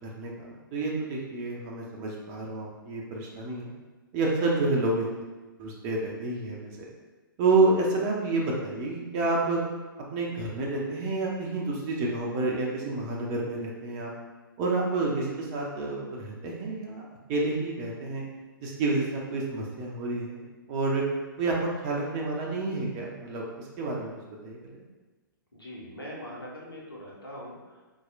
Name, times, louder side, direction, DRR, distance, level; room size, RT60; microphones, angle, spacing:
voice 1, 0.0-3.7 4.1-5.1 5.6-6.7 7.4-9.6 10.1-14.1 14.6-17.0 17.3-18.2 18.6-21.0 21.4-21.6 21.8-24.1 24.4-24.8, right 3 dB, 25° right, -3 dB, 0.5 m, -29 dB
voice 2, 25.5-27.8, equal, 80° left, -4 dB, 1.0 m, -42 dB
4.1 x 2.3 x 2.4 m, 1.2 s
figure-of-eight pair, 115°, 12 cm